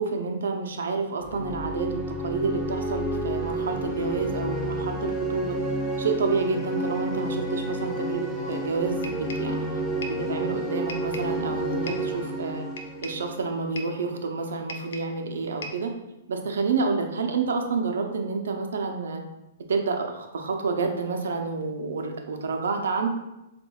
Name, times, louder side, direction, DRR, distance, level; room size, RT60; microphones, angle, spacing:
voice 1, 0.0-5.6 6.0-9.8 10.1-12.7 13.0-15.9 16.3-19.2 19.7-23.1, right 4 dB, 85° right, 3 dB, 0.7 m, -29 dB
sound 1, 1.2-13.9, right 1 dB, 10° left, 0.8 m, -30 dB
sound 2, 9.0-9.6 10.0-10.3 10.9-11.4 11.9-12.1 12.8-13.3 13.8-14.0 14.7-15.2 15.6-15.9, left 1 dB, 75° left, 0.6 m, -39 dB
7.1 x 2.6 x 2.3 m, 0.93 s
hypercardioid pair, 145°, 0 cm